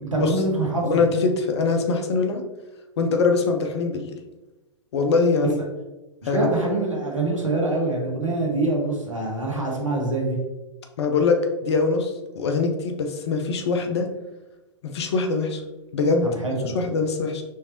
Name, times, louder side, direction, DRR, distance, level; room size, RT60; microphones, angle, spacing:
voice 1, 0.1-0.9 6.2-10.4 16.2-16.8, right 2 dB, 85° right, -1 dB, 1.3 m, -25 dB
voice 2, 0.8-2.4 3.0-4.1 4.9-5.6 6.3-6.5 11.0-14.1 14.8-15.6 15.9-16.3 16.7-17.4, left 4 dB, 55° left, 5 dB, 0.7 m, -23 dB
4.5 x 3.3 x 2.9 m, 1.0 s
figure-of-eight pair, 105°, 16 cm